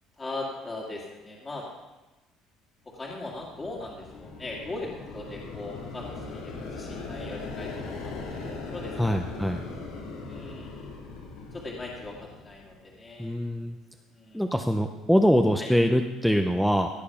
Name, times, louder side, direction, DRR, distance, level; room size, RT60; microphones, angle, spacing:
voice 1, 0.2-1.7 2.9-8.9 9.3-9.5 10.3-10.9 11.5-13.4 14.1-14.4 15.6-15.7, left 2 dB, 20° left, -2 dB, 2.0 m, -39 dB
sound 1, 3.1-12.9, left 3 dB, 85° left, 3.4 m, -39 dB
voice 2, 9.0-9.6 13.2-13.8 14.3-16.9, equal, ahead, 4 dB, 0.6 m, -23 dB
16.0 x 6.8 x 5.8 m, 1.1 s
cardioid pair, 145°, 0 cm